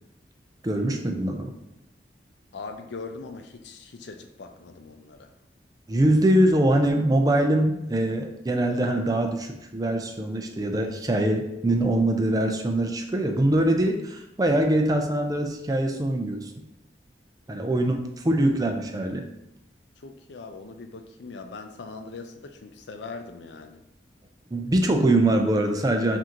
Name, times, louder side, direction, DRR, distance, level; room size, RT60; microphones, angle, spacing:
voice 1, 0.6-1.5 5.9-16.6 17.5-19.3 24.5-26.2, right 1 dB, 20° right, 4 dB, 0.4 m, -23 dB
voice 2, 2.5-5.3 17.5-18.0 20.0-23.8, left 4 dB, 80° left, 6 dB, 0.5 m, -41 dB
5.8 x 2.6 x 2.9 m, 0.87 s
head